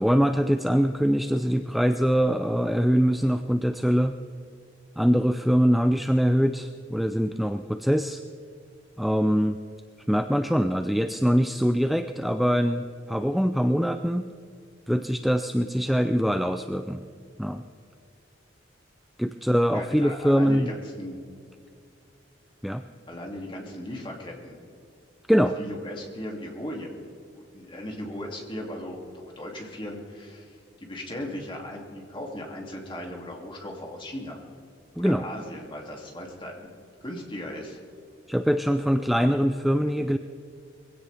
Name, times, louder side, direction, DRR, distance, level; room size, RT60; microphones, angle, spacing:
voice 1, 0.0-4.2 5.0-8.2 9.0-9.6 10.1-14.3 14.9-17.0 17.4-17.6 19.2-20.7 22.6-22.8 25.3-25.6 35.0-35.2 38.3-40.2, equal, ahead, 8 dB, 0.4 m, -23 dB
voice 2, 19.7-21.2 23.1-24.6 25.6-26.9 27.3-34.4 34.9-36.7 37.0-37.8, left 1 dB, 25° left, 0 dB, 2.6 m, -37 dB
22.0 x 16.5 x 3.4 m, 2.4 s
head